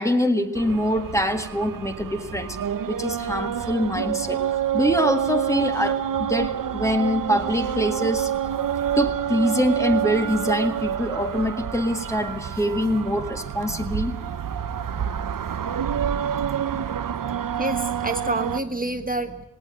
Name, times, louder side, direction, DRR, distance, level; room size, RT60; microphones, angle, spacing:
voice 1, 0.0-2.6 2.9-4.4 4.7-8.3 9.0-14.1, equal, 10° left, 6 dB, 1.7 m, -24 dB
sound 1, 0.6-18.6, right 9 dB, 55° right, 0.7 m, -28 dB
voice 2, 17.6-19.4, right 2 dB, 20° right, 6 dB, 1.4 m, -28 dB
18.5 x 18.0 x 8.8 m, 0.86 s
wide cardioid pair, 125°, 38 cm